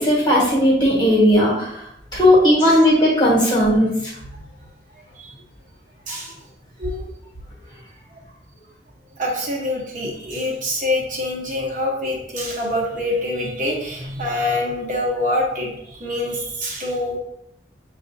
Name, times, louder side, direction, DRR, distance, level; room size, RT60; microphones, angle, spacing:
voice 1, 0.0-1.7 2.1-3.9, equal, 25° left, -5 dB, 1.3 m, -16 dB
voice 2, 9.2-17.2, left 1 dB, 45° right, -3 dB, 0.9 m, -25 dB
6.5 x 2.4 x 2.6 m, 0.77 s
head